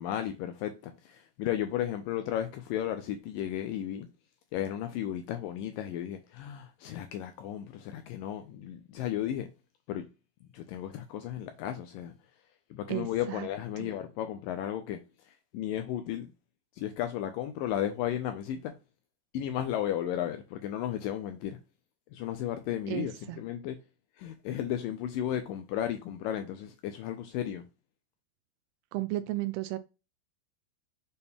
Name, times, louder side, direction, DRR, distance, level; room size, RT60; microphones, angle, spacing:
voice 1, 0.0-4.1 4.5-9.5 9.9-10.1 10.4-12.1 12.7-16.3 16.8-18.7 19.3-21.6 22.1-23.8 24.2-27.6, left 11 dB, 80° left, 2.0 m, -34 dB
voice 2, 12.9-13.5 13.8-13.9 22.9-23.4 28.9-29.8, right 17 dB, 85° right, 2.5 m, -34 dB
6.9 x 4.2 x 3.5 m
omnidirectional pair, 4.5 m